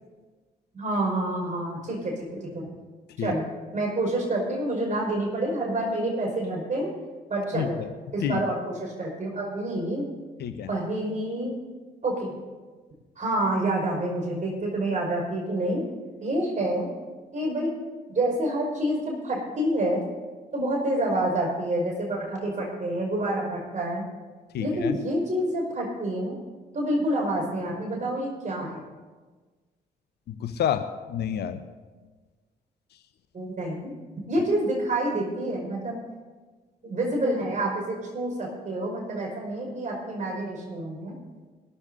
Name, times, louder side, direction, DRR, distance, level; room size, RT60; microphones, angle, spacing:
voice 1, 0.7-2.7 3.2-6.9 7.3-7.8 8.1-10.0 10.7-11.6 12.0-12.3 13.2-15.8 16.2-16.9 17.3-17.7 18.1-20.0 20.5-24.1 24.6-26.3 26.7-28.8 33.3-33.9 34.3-36.0 36.8-41.1, right 1 dB, 35° right, -1 dB, 5.2 m, -28 dB
voice 2, 24.5-25.0 30.3-31.6, left 9 dB, 50° left, 10 dB, 0.7 m, -28 dB
21.5 x 13.0 x 2.7 m, 1.4 s
figure-of-eight pair, 40°, 21 cm